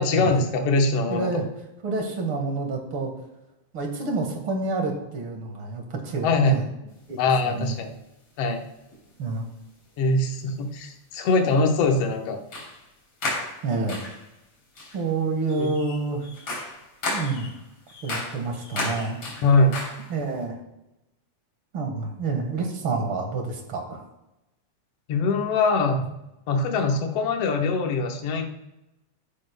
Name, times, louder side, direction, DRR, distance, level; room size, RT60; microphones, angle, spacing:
voice 1, 0.0-1.4 6.2-6.6 7.2-7.9 8.4-8.6 10.0-12.4 15.6-15.8 19.4-19.8 25.1-26.0 26.5-28.5, left 3 dB, 60° left, 3 dB, 1.8 m, -22 dB
voice 2, 1.1-1.5 1.8-3.1 3.7-6.7 7.1-7.2 7.4-7.8 9.2-9.5 13.6-14.0 14.9-16.6 17.0-17.5 18.0-19.2 20.1-20.6 21.7-24.0, right 3 dB, 50° right, 3 dB, 1.9 m, -28 dB
sound 1, 7.2-7.3 8.9-9.1 10.1-10.2 12.5-12.9 13.2-14.3 14.8-15.0 15.5-20.3, left 2 dB, 45° left, 4.1 m, -34 dB
14.0 x 10.5 x 2.2 m, 0.92 s
omnidirectional pair, 3.8 m